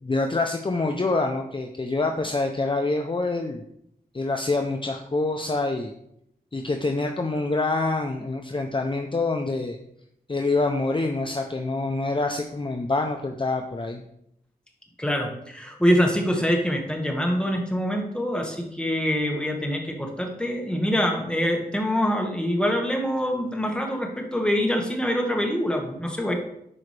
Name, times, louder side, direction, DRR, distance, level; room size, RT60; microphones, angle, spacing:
voice 1, 0.0-3.6 4.1-5.9 6.5-9.8 10.3-14.0, left 3 dB, 30° left, 4 dB, 0.6 m, -26 dB
voice 2, 15.0-26.3, equal, 5° left, 1 dB, 1.6 m, -25 dB
11.0 x 4.9 x 3.3 m, 0.76 s
wide cardioid pair, 65°, 16 cm